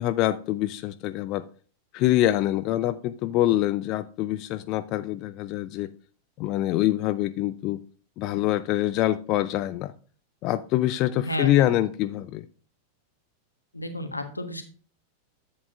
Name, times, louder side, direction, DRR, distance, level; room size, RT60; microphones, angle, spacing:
voice 1, 0.0-1.4 1.9-5.9 6.4-7.8 8.2-9.9 10.4-12.5, left 14 dB, 40° left, 0.4 m, -25 dB
voice 2, 11.1-11.7 13.7-14.6, left 1 dB, 85° left, 1.3 m, -32 dB
10.5 x 8.2 x 2.5 m
figure-of-eight pair, 90°, 0 cm